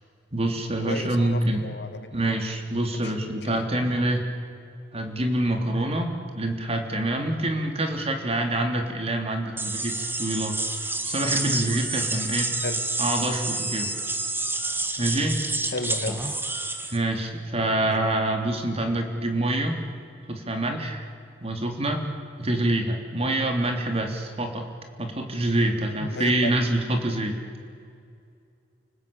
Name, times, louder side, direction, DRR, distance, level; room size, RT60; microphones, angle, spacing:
voice 1, 0.3-1.6 2.1-4.3 4.9-12.5 13.0-13.9 15.0-15.4 16.9-19.8 20.3-21.1 21.4-22.0 22.4-24.6 25.0-27.4, right 1 dB, 35° right, 4 dB, 3.4 m, -26 dB
voice 2, 0.8-2.3 2.9-3.1 3.4-3.6 12.6-12.8 15.7-16.4 16.8-16.9 17.8-18.1 26.0-26.6, left 2 dB, 65° left, 8 dB, 2.1 m, -34 dB
sound 1, 9.6-17.0, right 2 dB, 10° right, 1.8 m, -29 dB
29.5 x 19.5 x 8.8 m, 2.4 s
head